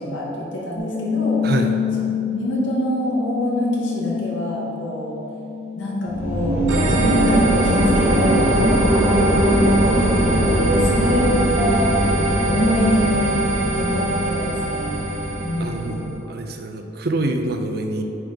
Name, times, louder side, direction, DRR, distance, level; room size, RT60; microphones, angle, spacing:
voice 1, 0.0-1.4 2.3-5.2 5.8-6.6 6.9-12.1 12.5-13.3 13.7-15.0 15.4-16.2, equal, 80° left, -4 dB, 1.6 m, -25 dB
sound 1, 0.8-6.8 7.2-8.6, left 7 dB, 40° left, 1.2 m, -28 dB
voice 2, 1.4-1.7 15.6-18.0, right 2 dB, 50° right, 5 dB, 0.5 m, -25 dB
sound 2, 6.1-16.0, equal, 10° right, 0.9 m, -21 dB
sound 3, 6.7-16.0, right 1 dB, 85° right, 1.2 m, -25 dB
9.1 x 3.5 x 5.3 m, 2.8 s
head